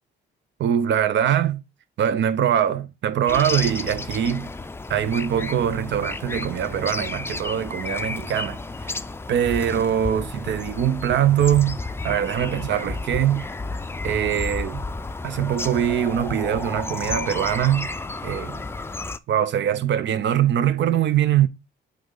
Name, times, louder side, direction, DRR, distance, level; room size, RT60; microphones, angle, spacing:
voice 1, 0.6-1.6 2.0-4.5 4.9-8.9 9.3-13.5 14.0-14.8 15.2-17.9 18.2-18.6 19.3-21.5, right 10 dB, 65° right, 0.7 m, -22 dB
sound 1, 3.3-19.2, left 3 dB, 10° left, 0.4 m, -32 dB
8.5 x 3.3 x 3.8 m
cardioid pair, 90°, 20 cm